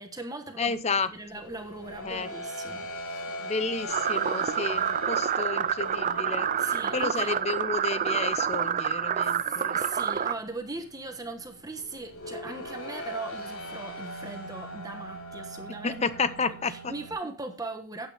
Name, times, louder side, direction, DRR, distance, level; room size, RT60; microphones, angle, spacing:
voice 1, 0.0-0.8 1.1-3.4 6.6-7.4 9.5-16.0 16.5-18.1, right 2 dB, 15° right, 1.2 m, -39 dB
voice 2, 0.6-1.1 2.0-2.3 3.4-9.8 15.8-16.9, left 4 dB, 30° left, 0.7 m, -31 dB
sound 1, 0.7-17.1, equal, 85° left, 3.7 m, -41 dB
sound 2, 3.9-10.3, right 8 dB, 35° right, 0.4 m, -28 dB
12.5 x 8.8 x 3.4 m
head